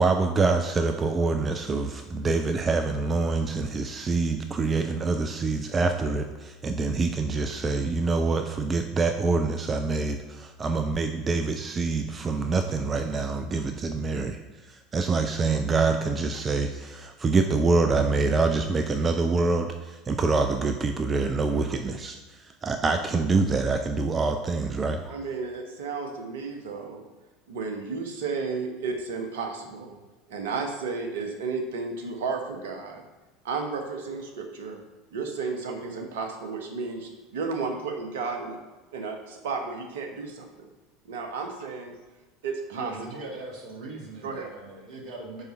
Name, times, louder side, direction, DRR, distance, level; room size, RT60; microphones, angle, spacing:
voice 1, 0.0-25.2, right 3 dB, 25° right, 6 dB, 0.5 m, -26 dB
voice 2, 25.1-27.0 27.5-30.0 30.3-33.0 33.4-34.8 35.1-38.6 38.9-40.7 41.0-41.9 42.4-43.2 44.2-44.5, right 4 dB, 65° right, 3 dB, 1.1 m, -33 dB
voice 3, 42.7-45.4, right 2 dB, 50° right, -2 dB, 1.9 m, -40 dB
5.4 x 5.2 x 5.9 m, 1.2 s
figure-of-eight pair, 75°, 0 cm